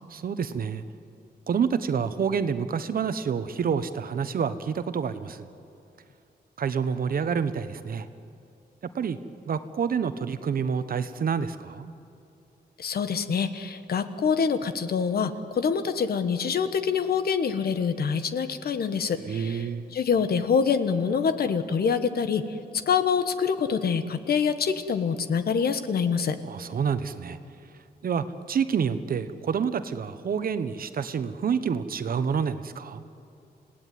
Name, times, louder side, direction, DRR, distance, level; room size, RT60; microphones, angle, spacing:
voice 1, 0.1-0.8 1.5-5.5 6.6-8.1 8.9-9.2 9.5-11.9 19.2-19.9 26.5-27.4 28.0-33.0, right 6 dB, 60° right, 11 dB, 1.1 m, -28 dB
voice 2, 12.8-19.6 19.9-26.4, left 6 dB, 65° left, 10 dB, 1.3 m, -25 dB
28.5 x 17.5 x 9.4 m, 2.6 s
wide cardioid pair, 135°, 17 cm